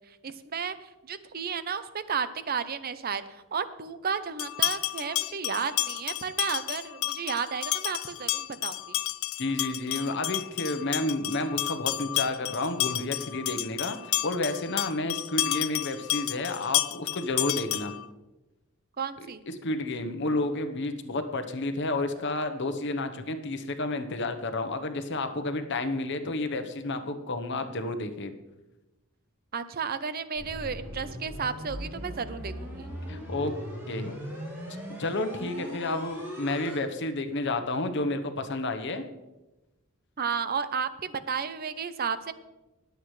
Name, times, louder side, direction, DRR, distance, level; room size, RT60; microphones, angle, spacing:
voice 1, 0.2-0.7 1.1-3.2 3.5-8.8 19.0-19.4 29.5-32.9 40.2-42.3, right 6 dB, 45° right, 13 dB, 0.6 m, -32 dB
sound 1, 4.4-18.1, left 16 dB, 80° left, 0.5 m, -31 dB
voice 2, 9.4-14.0 14.2-17.9 19.2-28.3 33.1-33.5 33.9-34.1 35.0-39.1, left 2 dB, 60° left, 8 dB, 1.0 m, -31 dB
sound 2, 30.4-36.8, equal, 10° right, 3.7 m, -39 dB
20.0 x 8.0 x 3.2 m, 1.1 s
head